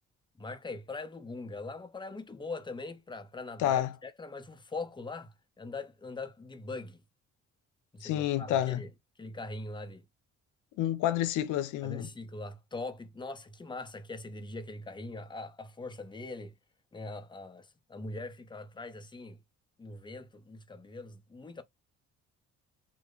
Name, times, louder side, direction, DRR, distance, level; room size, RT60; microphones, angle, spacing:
voice 1, 0.4-7.0 7.9-8.9 9.2-10.0 11.8-16.5 16.9-19.4 19.8-21.6, left 3 dB, 15° left, 0.6 m, -42 dB
voice 2, 3.6-3.9 8.0-8.8 10.8-12.1, left 12 dB, 85° left, 0.5 m, -29 dB
3.1 x 2.0 x 3.7 m
cardioid pair, 90°, 30 cm